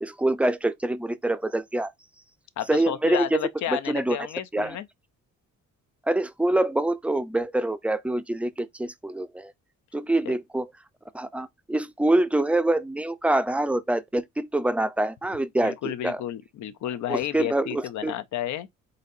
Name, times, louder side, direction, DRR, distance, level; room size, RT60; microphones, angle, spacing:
voice 1, 0.0-1.9 2.7-3.4 3.7-4.2 4.5-4.8 6.1-9.5 9.9-10.7 11.1-16.2 17.1-18.1, right 1 dB, 5° right, 0.5 m, -25 dB
voice 2, 2.6-4.9 10.3-10.4 15.6-18.7, left 11 dB, 70° left, 0.6 m, -31 dB
4.0 x 4.0 x 2.7 m
cardioid pair, 90°, 30 cm